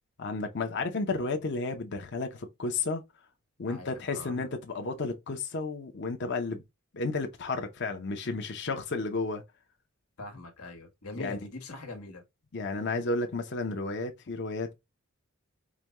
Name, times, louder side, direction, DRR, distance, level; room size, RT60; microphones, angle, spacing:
voice 1, 0.2-3.0 3.6-6.6 6.9-9.4 11.2-11.4 12.5-14.7, left 3 dB, 50° left, 0.7 m, -32 dB
voice 2, 3.7-4.5 10.2-12.2, left 2 dB, 90° left, 1.4 m, -42 dB
5.0 x 2.2 x 3.0 m
head